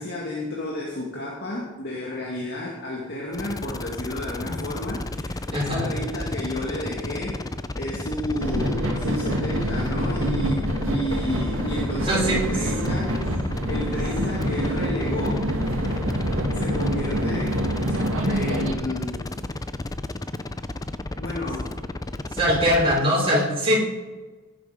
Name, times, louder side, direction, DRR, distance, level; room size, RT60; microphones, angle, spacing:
voice 1, 0.0-7.4 7.8-13.2 13.7-15.5 16.5-17.6 18.0-19.3 21.2-21.7, left 1 dB, 55° left, -3 dB, 2.2 m, -31 dB
sound 1, 3.3-23.0, left 2 dB, 15° left, 0.5 m, -33 dB
voice 2, 5.5-5.9 12.0-12.4 22.3-23.8, equal, 25° right, -4 dB, 5.3 m, -21 dB
sound 2, 8.4-18.7, equal, 70° right, 2.2 m, -26 dB
17.0 x 9.0 x 5.0 m, 1.2 s
head